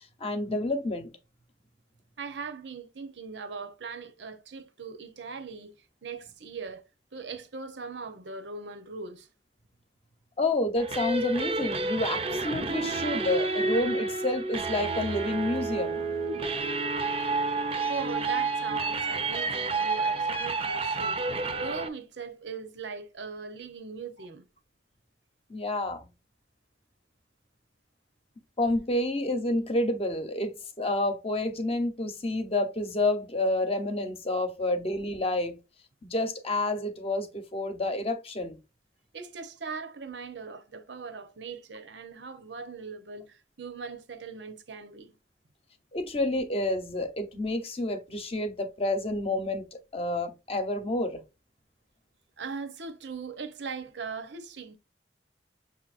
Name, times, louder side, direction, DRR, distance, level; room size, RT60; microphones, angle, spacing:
voice 1, 0.2-1.1 10.4-16.1 25.5-26.1 28.6-35.6 36.0-38.6 45.9-51.2, left 2 dB, 35° left, 0.8 m, -29 dB
voice 2, 2.2-5.7 6.0-6.8 7.1-9.3 17.9-21.2 21.6-24.4 39.1-45.1 52.4-54.8, right 4 dB, 80° right, 0.8 m, -40 dB
sound 1, 10.8-21.9, right 3 dB, 30° right, 0.6 m, -30 dB
6.8 x 2.9 x 2.5 m
head